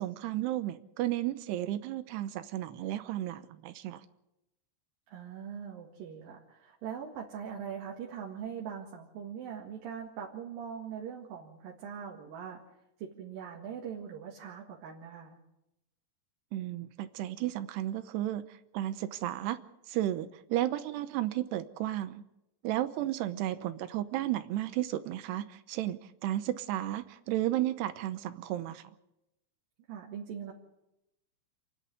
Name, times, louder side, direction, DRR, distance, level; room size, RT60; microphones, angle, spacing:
voice 1, 0.0-4.0 16.5-18.4 18.7-19.6 19.9-22.2 22.6-28.8, right 14 dB, 80° right, 12 dB, 3.0 m, -33 dB
voice 2, 5.1-12.6 13.0-15.4 23.3-23.6 29.9-30.5, right 7 dB, 60° right, 0 dB, 3.4 m, -42 dB
28.0 x 10.5 x 9.4 m, 0.90 s
omnidirectional pair, 4.8 m